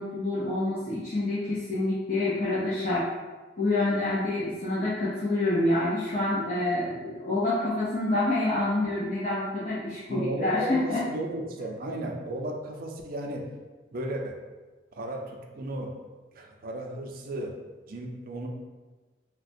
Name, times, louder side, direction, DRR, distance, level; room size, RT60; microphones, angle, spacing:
voice 1, 0.0-3.1 3.6-11.0, left 2 dB, 45° left, -9 dB, 0.6 m, -27 dB
voice 2, 10.1-13.5 13.9-14.4 14.9-15.9 16.3-17.5 17.9-18.5, right 1 dB, 50° right, 2 dB, 0.4 m, -35 dB
4.1 x 2.2 x 2.6 m, 1.2 s
head